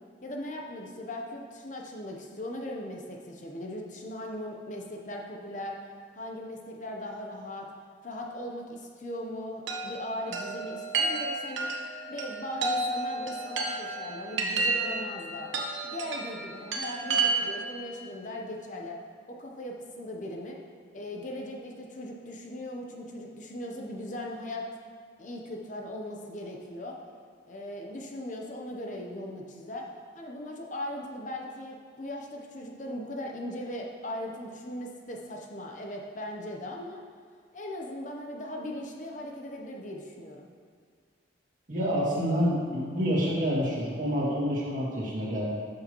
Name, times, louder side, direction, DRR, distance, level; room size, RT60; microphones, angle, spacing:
voice 1, 0.2-5.8 6.1-7.7 8.0-11.7 12.1-15.5 15.8-19.0 19.3-20.6 20.9-24.7 25.2-27.0 27.4-37.0 37.5-40.5, left 1 dB, 40° left, 0 dB, 0.8 m, -39 dB
Chime, 9.7-17.8, right 3 dB, 85° right, 1.1 m, -31 dB
voice 2, 41.7-45.4, equal, 45° right, -6 dB, 2.2 m, -28 dB
12.5 x 6.6 x 3.0 m, 2.1 s
head